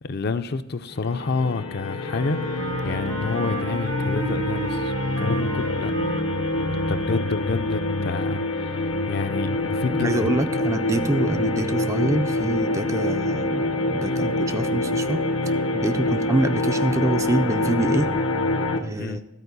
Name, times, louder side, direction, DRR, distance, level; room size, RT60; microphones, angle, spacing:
voice 1, 0.0-5.9 6.7-10.3 14.0-14.1 16.0-16.2 19.0-19.2, left 4 dB, 50° left, 10 dB, 0.5 m, -29 dB
sound 1, 0.9-18.8, left 2 dB, 75° left, 1.0 m, -26 dB
Wind instrument woodwind instrument, 2.0-7.4, right 3 dB, 60° right, 0.8 m, -34 dB
voice 2, 9.9-15.2 15.7-18.1 18.8-19.2, right 2 dB, 15° right, 9 dB, 0.3 m, -25 dB
13.0 x 4.6 x 8.1 m, 1.0 s
head